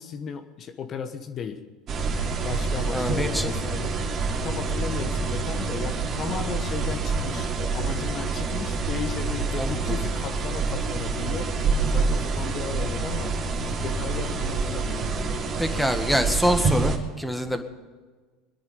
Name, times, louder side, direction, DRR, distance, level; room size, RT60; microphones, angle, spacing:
voice 1, 0.0-1.6 2.4-4.0 4.4-11.6 11.9-15.8, left 7 dB, 40° left, 8 dB, 1.2 m, -35 dB
sound 1, 1.9-17.0, right 4 dB, 40° right, 3.0 m, -27 dB
voice 2, 2.9-3.5 9.6-9.8 15.6-17.6, equal, ahead, 7 dB, 1.7 m, -25 dB
22.0 x 10.5 x 5.3 m, 1.4 s
hypercardioid pair, 75°, 0 cm